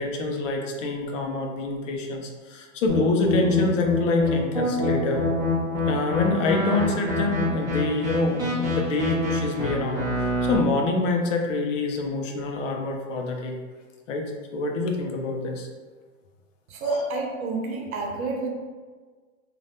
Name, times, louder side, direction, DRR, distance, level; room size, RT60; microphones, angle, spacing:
voice 1, 0.0-5.3 5.9-13.6 14.1-15.7 16.8-17.1, left 3 dB, 60° left, 2 dB, 0.7 m, -26 dB
sound 1, 2.9-10.6, left 1 dB, 10° right, 0.8 m, -26 dB
voice 2, 16.7-18.5, right 3 dB, 80° right, 0 dB, 0.8 m, -29 dB
3.3 x 2.5 x 2.6 m, 1.4 s
hypercardioid pair, 140°, 41 cm